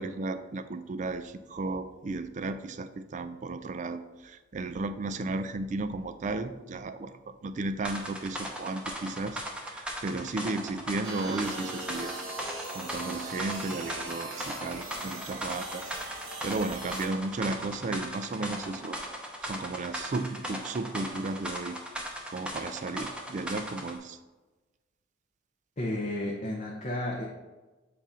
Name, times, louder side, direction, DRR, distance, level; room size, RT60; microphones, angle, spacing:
voice 1, 0.0-12.1 12.7-15.9 16.4-19.0 19.4-21.8 22.3-24.2, right 3 dB, 40° right, 11 dB, 0.3 m, -34 dB
sound 1, 7.8-24.0, equal, 5° right, 0.7 m, -38 dB
sound 2, 11.0-17.1, right 2 dB, 80° right, 1.3 m, -40 dB
voice 2, 25.8-27.2, left 1 dB, 35° left, -2 dB, 0.7 m, -32 dB
7.4 x 2.6 x 5.5 m, 1.2 s
head